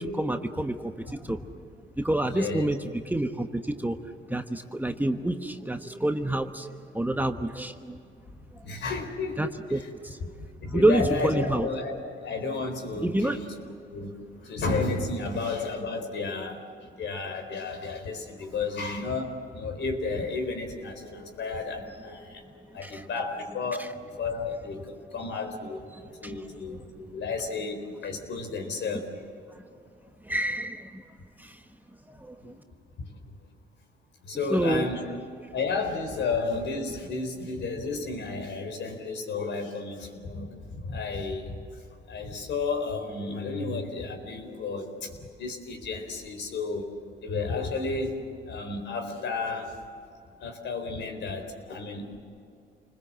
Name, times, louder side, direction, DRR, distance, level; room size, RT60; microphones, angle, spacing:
voice 1, 0.0-1.4 2.0-2.8 3.1-4.0 4.3-8.0 9.4-9.8 10.0-10.2 10.7-11.7 13.0-13.4 22.8-23.0 26.2-26.3 30.3-31.0 31.4-31.5 32.1-32.5 34.5-34.8, right 1 dB, 10° right, 6 dB, 1.2 m, -28 dB
voice 2, 2.3-2.7 8.6-9.9 10.6-16.6 17.0-25.8 26.2-29.1 32.4-32.6 33.1-33.2 34.2-35.1 35.5-41.6 42.1-45.1 45.4-46.9 47.2-48.2 48.5-49.8 50.4-52.2, left 3 dB, 65° left, 4 dB, 4.3 m, -32 dB
28.5 x 20.5 x 7.6 m, 2.4 s
cardioid pair, 90°, 20 cm